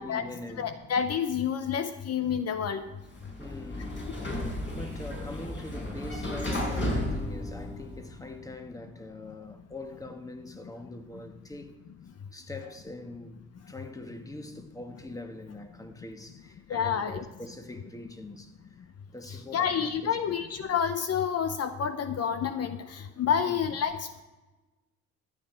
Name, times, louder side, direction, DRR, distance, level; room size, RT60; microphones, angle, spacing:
voice 1, 0.0-0.8 3.4-4.1 4.3-11.8 12.3-20.4 23.4-23.6, left 2 dB, 10° left, 1.4 m, -43 dB
voice 2, 0.6-2.8 16.7-17.2 19.5-24.2, left 7 dB, 55° left, 0.7 m, -29 dB
Sliding door, 3.0-8.2, left 1 dB, 40° left, 4.7 m, -33 dB
13.5 x 9.0 x 4.5 m
cardioid pair, 90°, 30 cm